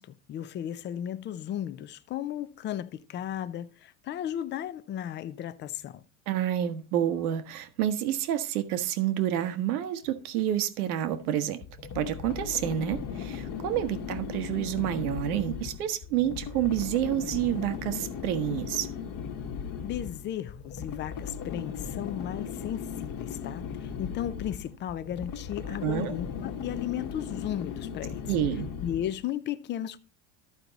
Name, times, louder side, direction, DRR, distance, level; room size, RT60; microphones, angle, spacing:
voice 1, 0.0-6.0 19.8-28.2 28.8-30.0, left 11 dB, 25° left, 0.4 m, -35 dB
voice 2, 6.3-11.6 11.9-18.9 25.8-26.1 28.3-28.7, right 11 dB, 85° right, 1.4 m, -29 dB
sound 1, 11.6-29.2, left 7 dB, 45° left, 1.3 m, -37 dB
14.0 x 4.7 x 4.0 m
supercardioid pair, 130°, 43 cm